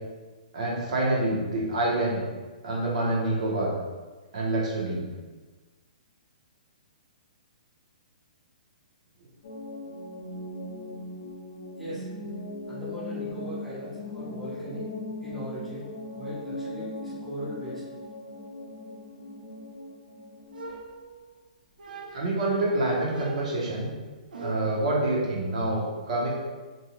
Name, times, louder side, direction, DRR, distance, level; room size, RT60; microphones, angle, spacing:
voice 1, 0.5-2.2 2.6-3.7 4.3-5.0 22.1-23.9 24.4-26.3, right 2 dB, 50° right, -4 dB, 0.8 m, -27 dB
sound 1, 9.4-20.8, left 1 dB, 60° left, 0.5 m, -39 dB
voice 2, 11.8-12.1 12.7-14.9 15.2-15.9 16.1-17.8, equal, 5° left, -12 dB, 0.6 m, -39 dB
sound 2, 20.5-21.4 21.8-22.4 23.1-24.9, right 3 dB, 85° right, 0.5 m, -41 dB
2.6 x 2.2 x 3.0 m, 1.3 s
hypercardioid pair, 165°, 5 cm